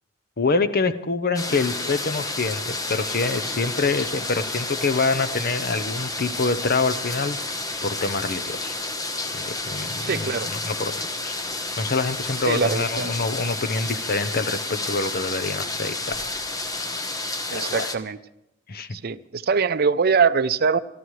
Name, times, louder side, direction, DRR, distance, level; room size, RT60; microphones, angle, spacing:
voice 1, 0.4-7.4 7.8-8.7 9.3-11.4 11.8-16.3 17.5-17.9 18.7-18.9, left 3 dB, 50° left, 12 dB, 0.8 m, -26 dB
sound 1, 1.3-18.0, left 2 dB, 20° left, 1.0 m, -30 dB
voice 2, 10.0-10.5 12.5-13.1 17.5-18.2 18.9-20.8, right 5 dB, 50° right, 12 dB, 0.5 m, -23 dB
27.5 x 13.0 x 3.2 m, 0.87 s
head